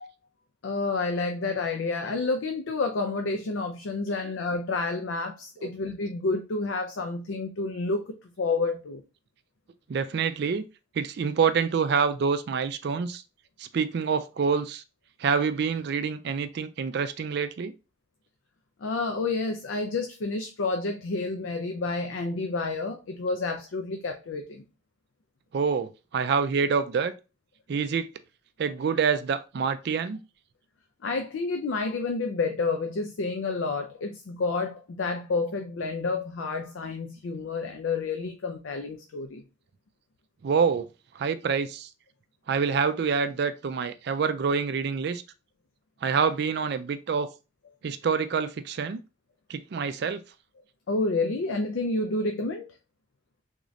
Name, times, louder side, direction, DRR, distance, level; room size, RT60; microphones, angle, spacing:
voice 1, 0.6-9.0 18.8-24.6 31.0-39.4 50.9-52.7, left 3 dB, 75° left, 0.5 m, -29 dB
voice 2, 9.9-10.6 11.0-13.2 13.6-14.8 15.2-17.7 25.5-27.1 27.7-28.1 28.6-30.2 40.4-40.9 41.1-41.9 42.5-45.2 46.0-47.3 47.8-49.0 49.5-50.2, right 6 dB, 55° right, 0.3 m, -26 dB
3.6 x 2.6 x 3.1 m
head